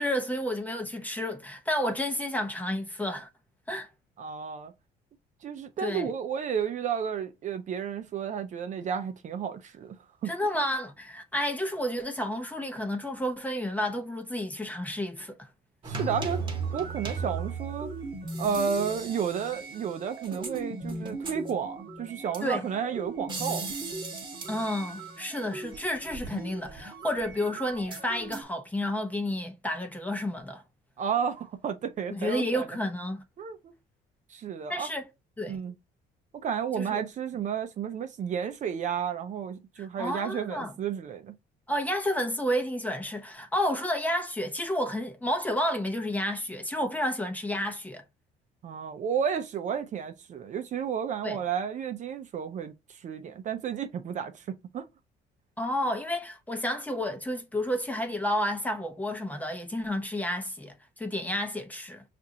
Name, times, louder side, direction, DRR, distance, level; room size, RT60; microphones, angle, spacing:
voice 1, 0.0-3.3 3.7-3.9 5.8-6.1 10.3-15.5 22.4-22.6 24.5-30.6 32.1-33.2 34.7-35.1 35.4-35.6 36.8-37.0 39.8-40.7 41.7-48.0 51.2-51.4 55.6-62.0, left 1 dB, 10° left, 0.7 m, -31 dB
voice 2, 4.2-4.7 5.4-9.9 10.2-10.6 15.8-16.4 16.7-17.9 18.4-23.7 31.0-32.7 33.4-33.7 34.3-34.9 35.5-35.7 36.4-41.3 48.6-54.9, right 7 dB, 45° right, 0.6 m, -32 dB
sound 1, 15.8-28.4, right 3 dB, 30° right, 1.1 m, -37 dB
5.8 x 2.5 x 2.8 m
cardioid pair, 110°, 17 cm